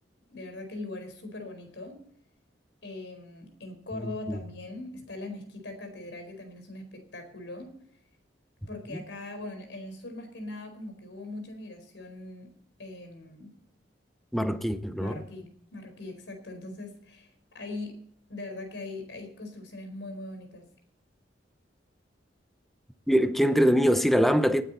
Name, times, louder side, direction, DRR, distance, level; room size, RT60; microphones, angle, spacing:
voice 1, 0.3-2.0 2.8-7.7 8.7-12.5 12.8-13.5 15.0-17.9 18.3-20.6, left 2 dB, 80° left, 4.5 m, -41 dB
voice 2, 4.0-4.4 14.3-15.2 23.1-24.6, equal, ahead, 0.8 m, -23 dB
19.5 x 9.3 x 4.1 m
head